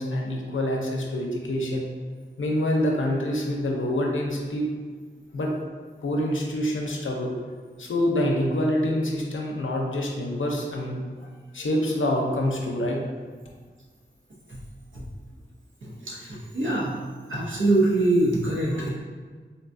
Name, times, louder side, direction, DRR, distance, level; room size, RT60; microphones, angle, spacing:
voice 1, 0.0-1.8 2.4-4.7 5.3-5.5 6.0-7.3 7.8-11.1 11.5-13.0, left 1 dB, 80° left, -1 dB, 0.5 m, -26 dB
voice 2, 15.8-16.3 16.5-17.0 17.3-18.9, right 2 dB, 75° right, -5 dB, 0.8 m, -23 dB
3.9 x 2.2 x 2.5 m, 1.5 s
wide cardioid pair, 55°, 20 cm